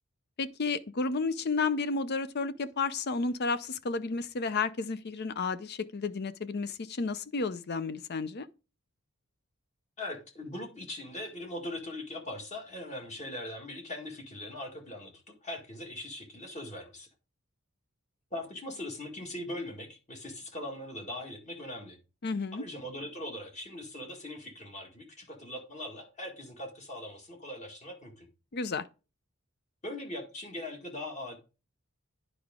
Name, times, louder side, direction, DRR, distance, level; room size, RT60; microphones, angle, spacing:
voice 1, 0.4-8.5 22.2-22.6 28.5-28.9, left 4 dB, 50° left, 0.6 m, -32 dB
voice 2, 10.0-15.1 15.4-17.1 18.3-22.0 22.5-28.3 29.8-31.4, left 1 dB, 35° left, 1.9 m, -40 dB
9.9 x 4.8 x 3.6 m
head